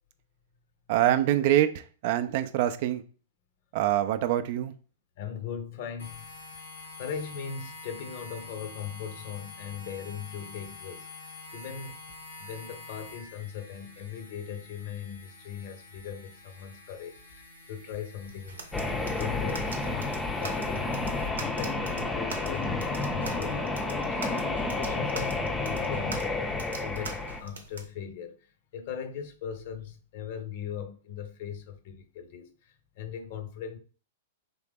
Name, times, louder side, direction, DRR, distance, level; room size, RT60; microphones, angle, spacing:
voice 1, 0.9-3.0 3.7-4.7, right 12 dB, 55° right, 0.4 m, -25 dB
voice 2, 5.2-6.3 7.0-11.1 11.5-11.9 12.4-18.7 19.2-24.2 24.6-26.3 26.8-28.4 28.7-33.8, left 8 dB, 55° left, 0.7 m, -39 dB
sound 1, 6.0-21.3, left 3 dB, 90° left, 1.6 m, -47 dB
sound 2, 18.2-27.9, right 3 dB, 85° right, 0.7 m, -44 dB
sound 3, 18.7-27.4, left 3 dB, 10° left, 0.5 m, -30 dB
3.7 x 2.9 x 3.6 m
hypercardioid pair, 115°, 0 cm